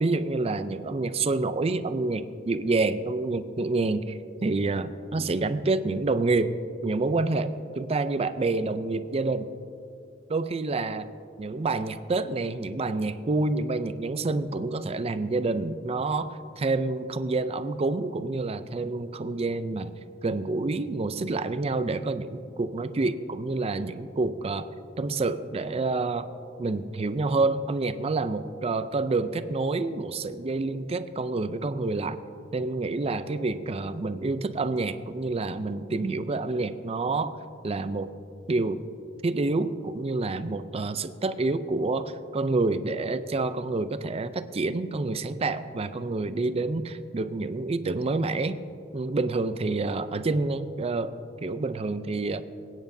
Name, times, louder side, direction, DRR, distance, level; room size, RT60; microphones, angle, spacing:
voice 1, 0.0-6.5 6.8-9.5 10.3-11.1 11.4-19.9 20.2-24.7 25.0-26.3 26.6-32.2 32.5-37.4 37.6-38.1 38.5-38.8 39.2-48.6 48.9-51.1 51.4-52.4, right 3 dB, 30° right, 12 dB, 0.4 m, -28 dB
22.5 x 9.2 x 2.7 m, 2.5 s
head